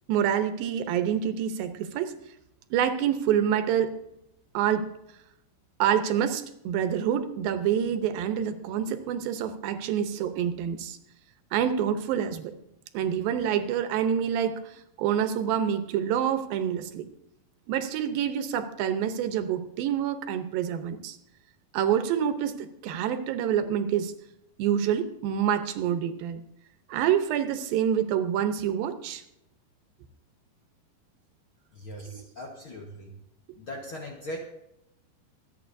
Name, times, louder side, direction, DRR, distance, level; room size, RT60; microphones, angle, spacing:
voice 1, 0.1-2.1 2.7-4.0 4.5-5.0 5.8-11.0 11.5-12.5 12.9-17.1 17.7-21.2 21.7-24.1 24.6-26.4 26.9-29.2 32.0-32.2, right 9 dB, 80° right, 9 dB, 2.6 m, -27 dB
voice 2, 31.7-33.1 33.6-34.4, equal, 55° left, -1 dB, 1.4 m, -39 dB
25.0 x 8.9 x 2.6 m, 0.82 s
omnidirectional pair, 4.2 m